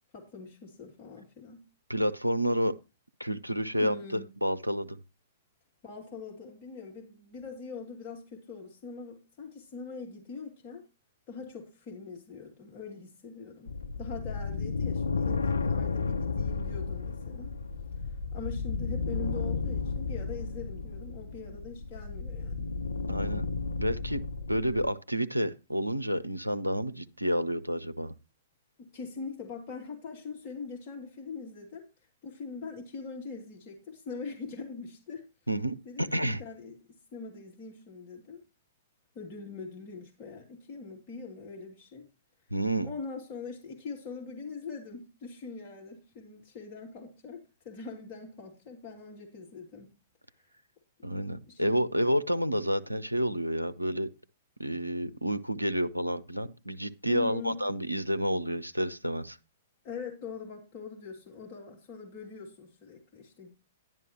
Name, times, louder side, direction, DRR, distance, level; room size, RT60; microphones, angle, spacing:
voice 1, 0.1-1.6 2.4-2.6 3.8-4.3 5.8-10.8 11.3-17.5 18.3-22.7 28.8-31.8 32.2-35.3 35.8-36.7 37.1-38.4 39.1-42.1 42.8-49.9 51.5-51.8 57.1-57.6 59.8-63.5, left 4 dB, 30° left, 2.5 m, -42 dB
voice 2, 1.9-2.7 3.2-5.0 23.1-23.5 23.8-24.2 24.5-28.1 35.5-36.4 42.5-42.9 51.0-54.1 54.6-59.4, equal, 90° right, 0.7 m, -30 dB
sound 1, 13.7-24.9, left 4 dB, 70° left, 0.5 m, -33 dB
11.0 x 10.5 x 3.0 m
figure-of-eight pair, 110°, 0 cm